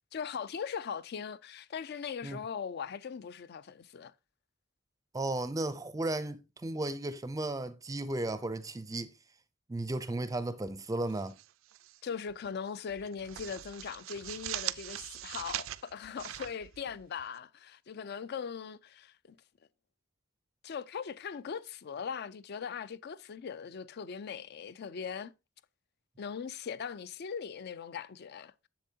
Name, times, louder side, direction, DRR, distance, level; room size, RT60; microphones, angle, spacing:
voice 1, 0.1-4.1 12.0-19.4 20.6-25.3 26.2-28.5, left 6 dB, 55° left, 0.4 m, -40 dB
voice 2, 5.1-9.1 9.7-11.3, right 2 dB, 20° right, 0.5 m, -34 dB
sound 1, 11.1-12.0 12.3-12.5 12.9-17.4, right 14 dB, 80° right, 0.4 m, -41 dB
7.5 x 7.1 x 2.7 m
head